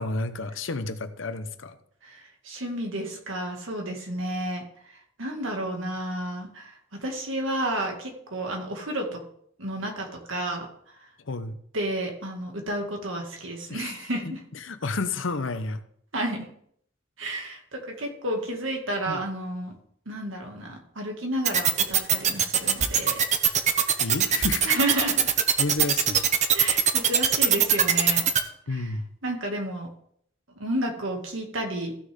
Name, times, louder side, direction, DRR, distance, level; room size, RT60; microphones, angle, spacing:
voice 1, 0.0-1.8 11.3-11.6 13.7-13.9 14.2-14.3 14.6-15.8 19.1-19.2 24.0-24.8 25.6-26.2 28.7-29.1, left 3 dB, 75° left, 10 dB, 0.8 m, -31 dB
voice 2, 2.0-4.6 5.2-9.2 9.6-10.7 11.7-14.4 16.1-16.5 17.2-19.7 20.1-23.2 24.6-25.2 26.5-28.2 28.7-28.9 29.2-29.9 30.6-31.9, right 1 dB, 80° right, 2 dB, 2.2 m, -31 dB
sound 1, 21.4-28.4, right 8 dB, 35° right, 0.8 m, -20 dB
15.0 x 6.4 x 3.7 m, 0.66 s
head